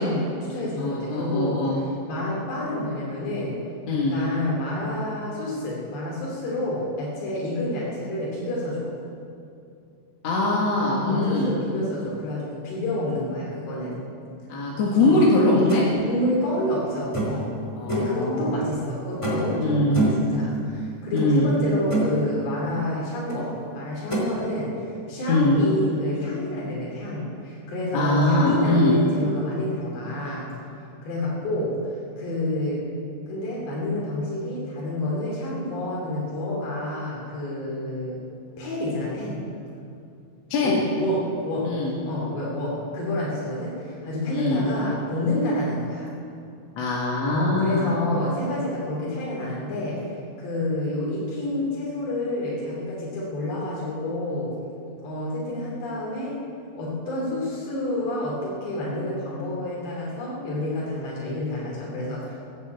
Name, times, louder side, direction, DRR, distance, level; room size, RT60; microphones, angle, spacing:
voice 1, 0.0-1.6 2.1-3.5 3.9-8.9 11.0-14.0 15.0-15.2 16.1-17.5 17.9-24.7 25.1-30.5 31.0-31.7 32.2-32.8 33.3-38.2 38.6-39.4 40.6-41.7 42.1-46.1 47.3-50.0 50.4-54.5 55.0-56.3 56.8-62.4, left 1 dB, 80° left, -5 dB, 5.0 m, -28 dB
voice 2, 0.8-1.7 3.9-4.2 10.2-11.5 14.5-15.8 17.8-18.6 19.6-20.1 21.1-21.5 25.3-25.6 27.9-29.0 40.5-40.8 41.6-41.9 44.3-44.7 46.8-47.9, left 2 dB, 50° left, -3 dB, 2.2 m, -22 dB
sound 1, 15.7-15.9 17.1-17.5 17.9-18.2 19.2-19.5 19.9-20.3 21.2-21.3 21.6-22.1 23.3-23.4 24.1-24.3, right 2 dB, 10° left, 1.9 m, -25 dB
14.5 x 10.5 x 8.1 m, 2.5 s
omnidirectional pair, 4.8 m